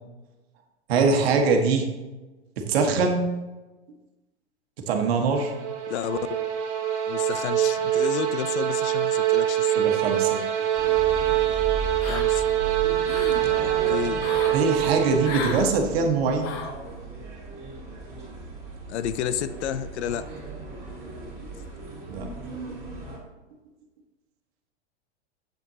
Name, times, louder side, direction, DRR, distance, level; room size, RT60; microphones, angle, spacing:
voice 1, 0.9-1.9 2.6-3.2 4.9-5.5 9.8-10.4 14.5-16.5 22.1-22.3, right 4 dB, 60° right, 3 dB, 1.4 m, -22 dB
sound 1, 5.2-15.7, right 12 dB, 85° right, 1.6 m, -24 dB
voice 2, 5.9-6.3 7.1-9.9 12.1-12.4 13.6-14.2 18.9-20.3, left 10 dB, 75° left, 13 dB, 0.6 m, -31 dB
sound 2, 10.7-23.2, right 3 dB, 10° right, 2.5 m, -37 dB
sound 3, 12.0-12.5 12.9-13.4 14.2-14.6 15.2-15.7 16.4-16.8, left 6 dB, 15° left, 0.3 m, -34 dB
7.7 x 7.6 x 2.8 m, 1.1 s
supercardioid pair, 150°, 34 cm